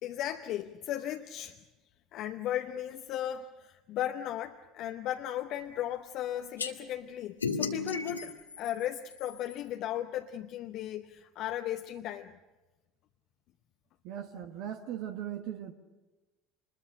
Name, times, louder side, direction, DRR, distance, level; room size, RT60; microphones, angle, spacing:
voice 1, 0.0-1.6 2.1-12.4, left 11 dB, 55° left, 0.9 m, -36 dB
sound 1, 6.6-6.7 7.4-9.6, left 4 dB, 90° left, 1.6 m, -35 dB
voice 2, 14.0-15.7, right 10 dB, 60° right, 1.4 m, -38 dB
26.0 x 22.0 x 6.5 m
figure-of-eight pair, 70°, 0 cm